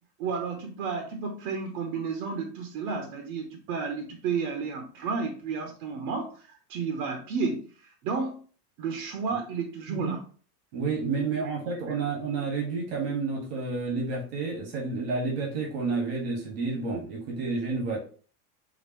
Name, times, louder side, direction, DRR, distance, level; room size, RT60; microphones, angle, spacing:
voice 1, 0.2-8.4 8.8-10.2 11.9-12.0, right 5 dB, 60° right, 3 dB, 0.9 m, -32 dB
voice 2, 10.7-18.0, right 4 dB, 85° right, -1 dB, 1.8 m, -30 dB
5.0 x 2.5 x 3.0 m, 0.41 s
supercardioid pair, 135°, 47 cm